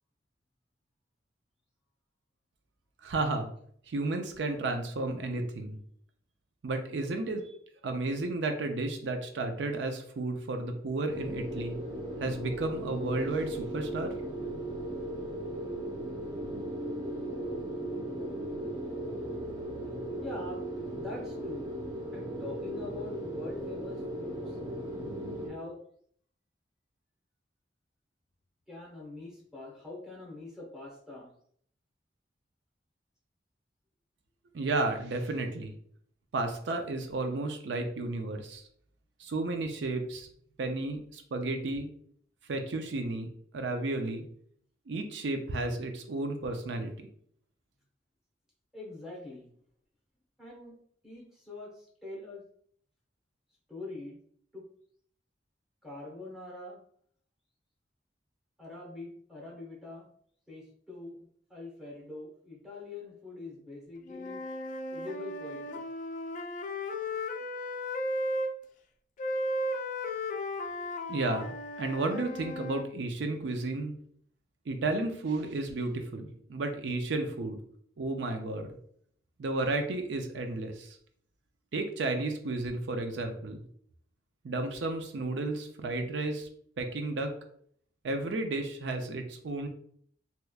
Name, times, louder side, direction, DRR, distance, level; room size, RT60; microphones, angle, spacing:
voice 1, 3.0-3.5 3.9-5.8 6.6-7.5 7.8-11.8 12.2-14.1 34.5-35.7 36.3-38.6 39.2-40.3 40.6-41.9 42.5-43.3 43.5-44.2 44.9-47.1 71.1-73.9 74.7-77.6 78.0-78.7 79.4-81.0 81.7-83.6 84.4-86.5 86.8-87.3 88.0-89.7, right 2 dB, 85° right, 5 dB, 0.5 m, -32 dB
sound 1, 11.1-25.5, right 1 dB, 25° right, 0.7 m, -37 dB
voice 2, 20.2-20.7 20.9-21.7 22.1-24.6 25.4-25.8 28.7-31.3 48.7-49.5 50.4-50.8 51.0-52.4 53.7-54.2 54.5-54.6 55.8-56.8 58.6-60.1 60.5-64.4 64.9-65.8, left 2 dB, 5° right, -3 dB, 1.1 m, -43 dB
Wind instrument woodwind instrument, 64.1-68.5 69.2-72.9, left 1 dB, 45° left, 0.3 m, -35 dB
3.4 x 2.9 x 2.3 m, 0.62 s
head